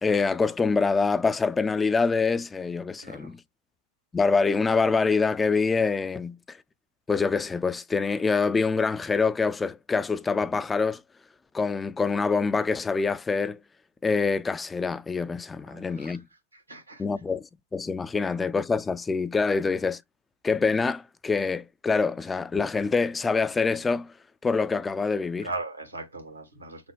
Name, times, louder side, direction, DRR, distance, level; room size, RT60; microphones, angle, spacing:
voice 1, 0.0-3.4 4.1-6.6 7.1-11.0 11.5-13.6 14.0-16.2 17.0-20.0 20.4-24.1 24.4-25.5, left 4 dB, 15° left, 0.4 m, -25 dB
voice 2, 3.0-3.3 15.7-16.2 16.5-17.0 25.4-26.9, right 3 dB, 80° right, 1.6 m, -39 dB
6.0 x 2.1 x 3.3 m
figure-of-eight pair, 90°, 0 cm